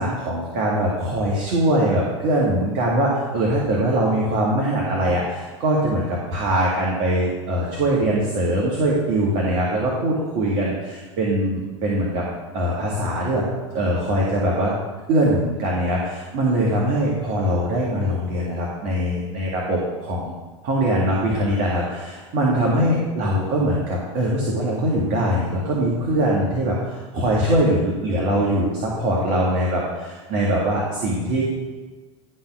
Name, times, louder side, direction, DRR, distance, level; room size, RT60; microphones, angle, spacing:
voice 1, 0.0-12.2 12.5-13.4 13.7-14.7 15.1-20.3 20.6-31.4, right 1 dB, 55° right, -4 dB, 2.0 m, -22 dB
11.5 x 3.9 x 6.1 m, 1.3 s
hypercardioid pair, 85°, 16 cm